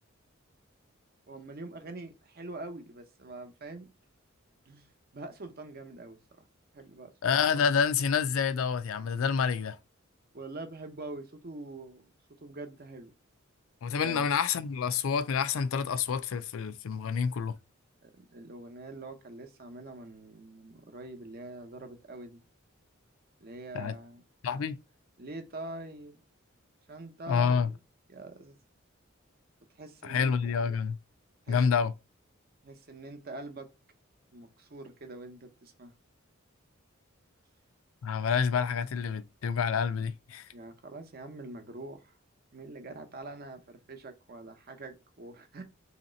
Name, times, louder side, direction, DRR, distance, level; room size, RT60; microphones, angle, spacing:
voice 1, 1.3-3.9 4.7-6.4 6.7-7.1 10.3-12.1 12.4-13.1 14.0-14.3 18.0-22.4 23.4-24.2 24.5-24.6 25.2-26.2 26.9-27.8 28.1-28.6 29.7-30.6 31.5-31.6 32.6-33.7 34.3-35.9 40.5-42.1 42.5-45.6, right 2 dB, 50° right, 0.7 m, -44 dB
voice 2, 7.2-9.8 13.8-17.5 23.7-23.9 24.4-24.8 27.3-27.7 30.0-31.0 31.5-31.9 38.0-40.5, left 6 dB, 75° left, 0.4 m, -28 dB
3.1 x 2.8 x 3.8 m
head